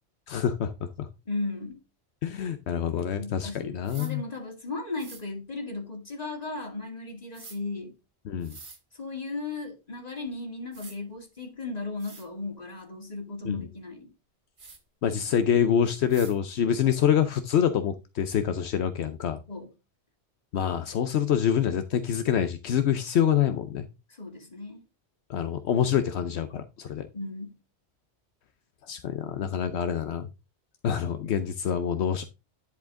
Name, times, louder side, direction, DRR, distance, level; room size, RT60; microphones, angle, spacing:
voice 1, 0.3-1.1 2.2-4.2 8.3-8.6 13.4-13.6 15.0-19.4 20.5-23.9 25.3-27.1 28.8-30.3 30.8-32.2, left 8 dB, 80° left, 1.0 m, -26 dB
voice 2, 1.3-1.8 3.2-8.0 8.9-14.1 19.5-19.7 24.1-24.8 27.1-27.6, left 3 dB, 35° left, 2.3 m, -36 dB
sound 1, 3.8-4.1 5.0-5.2 7.3-7.6 8.4-8.8 10.3-10.4 10.7-11.0 11.6-11.7 12.0-12.3 14.6-14.8 16.1-16.4, right 4 dB, 85° right, 2.0 m, -46 dB
10.5 x 5.0 x 3.5 m
omnidirectional pair, 1.1 m